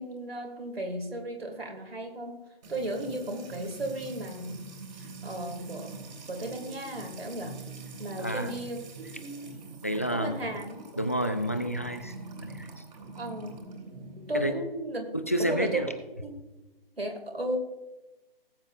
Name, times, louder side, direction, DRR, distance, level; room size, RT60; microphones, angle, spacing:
voice 1, 0.0-2.4 2.7-4.6 4.9-6.0 6.3-7.6 8.0-9.5 10.1-10.9 13.1-13.7 14.2-15.1 15.4-15.8 16.2-16.4 17.0-17.6, right 1 dB, 85° right, 2 dB, 2.7 m, -35 dB
Music / Water tap faucet / Trickle dribble, 2.6-14.4, right 3 dB, 50° right, 2.5 m, -44 dB
voice 2, 8.2-8.5 9.8-10.4 11.0-12.8 14.3-14.5 15.1-15.9, equal, 15° left, 9 dB, 0.3 m, -30 dB
18.5 x 7.9 x 2.6 m, 1.0 s
figure-of-eight pair, 140°, 29 cm